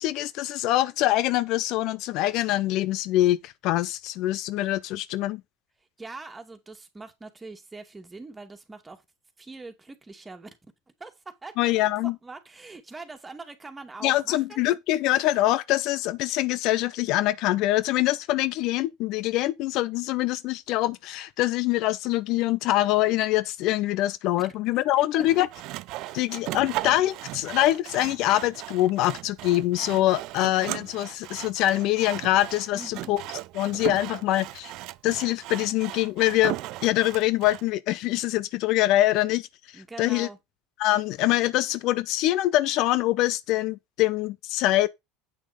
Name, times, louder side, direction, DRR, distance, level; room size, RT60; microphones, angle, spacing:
voice 1, 0.0-5.4 11.6-12.1 14.0-25.5 26.1-33.2 33.5-34.7 35.0-36.6 36.8-39.5 39.7-40.3 40.8-44.9, left 15 dB, 55° left, 0.5 m, -24 dB
voice 2, 6.0-9.0 9.4-10.5 11.0-14.6 24.7-25.4 26.0-26.3 32.7-33.1 39.7-40.4, right 3 dB, 15° right, 2.3 m, -43 dB
Sawing, 25.2-37.6, right 18 dB, 55° right, 0.4 m, -37 dB
8.6 x 6.1 x 5.0 m
hypercardioid pair, 75°, 0 cm